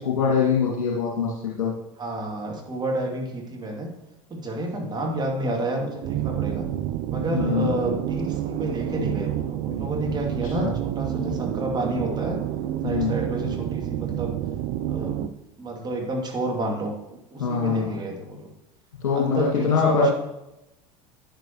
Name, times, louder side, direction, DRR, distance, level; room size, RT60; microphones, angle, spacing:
voice 1, 0.0-1.7 7.3-7.8 10.4-10.7 12.8-13.2 17.4-17.9 19.0-20.1, left 5 dB, 65° left, -4 dB, 1.9 m, -23 dB
voice 2, 2.0-3.9 4.3-6.6 7.1-12.4 12.8-14.3 14.9-15.3 15.6-16.9 17.3-18.5 19.1-20.1, right 1 dB, 20° right, 1 dB, 2.3 m, -30 dB
sound 1, 6.0-15.3, right 12 dB, 45° right, 0.5 m, -29 dB
11.5 x 9.7 x 3.0 m, 0.91 s
figure-of-eight pair, 75°, 19 cm